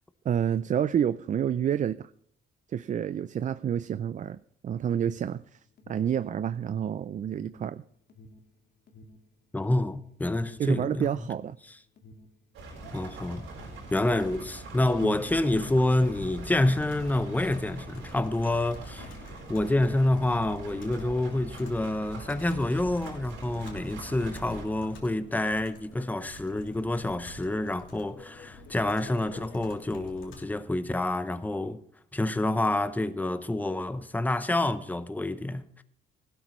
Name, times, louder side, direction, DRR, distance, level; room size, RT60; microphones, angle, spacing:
voice 1, 0.3-2.1 2.7-7.8 10.6-11.6 15.0-15.1, right 9 dB, 40° right, 0.4 m, -29 dB
Alarm, 4.7-22.5 22.7-24.0, left 1 dB, 55° left, 1.9 m, -53 dB
voice 2, 9.5-11.1 12.9-13.5 13.9-19.1 19.5-31.8 32.1-35.8, left 1 dB, 10° left, 0.7 m, -28 dB
sound 1, 12.5-24.7, right 2 dB, 85° right, 4.3 m, -43 dB
Computer keyboard, 15.4-30.4, left 2 dB, 75° left, 3.1 m, -49 dB
16.0 x 12.0 x 3.1 m
cardioid pair, 90°, 20 cm